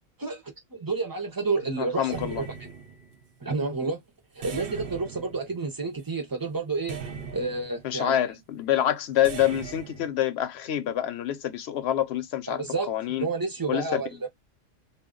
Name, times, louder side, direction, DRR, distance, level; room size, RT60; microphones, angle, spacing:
voice 1, 0.7-2.5 3.4-4.0 4.4-7.0 7.3-8.2 12.5-14.3, right 3 dB, 30° right, 0.4 m, -30 dB
voice 2, 1.8-2.4 7.8-13.3 13.7-14.0, left 11 dB, 65° left, 0.8 m, -27 dB
sound 1, 2.1-3.4 4.4-6.1 6.9-8.0 9.2-10.1, right 6 dB, 55° right, 0.7 m, -40 dB
2.2 x 2.1 x 3.6 m
omnidirectional pair, 1.3 m